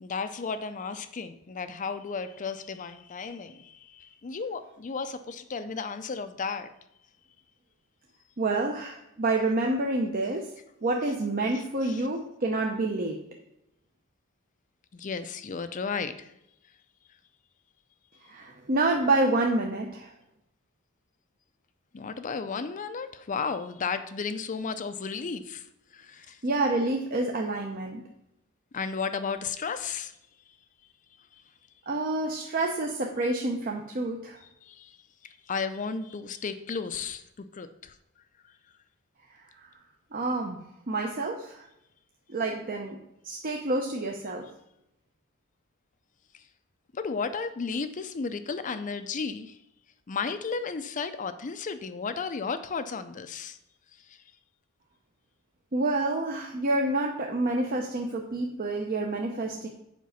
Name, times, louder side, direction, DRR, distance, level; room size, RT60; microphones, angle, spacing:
voice 1, 0.0-6.7 11.5-12.1 14.9-16.3 21.9-25.6 25.9-26.4 28.7-30.1 34.6-35.0 35.2-37.2 37.5-37.9 46.9-49.6 50.1-53.6 54.1-54.2, left 5 dB, 35° left, 10 dB, 0.4 m, -34 dB
voice 2, 8.4-10.5 10.8-13.2 18.3-20.1 26.4-28.0 31.9-34.4 39.6-39.7 40.1-41.7 42.3-43.0 43.2-44.5 55.7-59.7, right 2 dB, 40° right, 1 dB, 0.7 m, -28 dB
7.4 x 5.0 x 5.6 m, 0.82 s
head